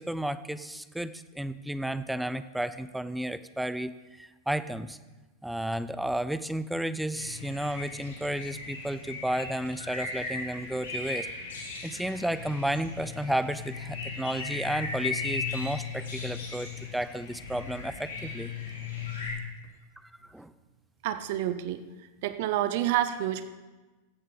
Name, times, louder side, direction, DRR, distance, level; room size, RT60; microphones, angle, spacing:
voice 1, 0.0-5.0 5.4-11.3 11.8-18.5 20.0-20.5, right 1 dB, 5° right, 13 dB, 0.4 m, -32 dB
sound 1, 7.1-19.3, left 4 dB, 70° left, 2.7 m, -37 dB
voice 2, 21.0-21.9 22.2-23.5, right 12 dB, 50° right, 11 dB, 0.6 m, -28 dB
14.0 x 8.0 x 3.7 m, 1.2 s
figure-of-eight pair, 90°, 0 cm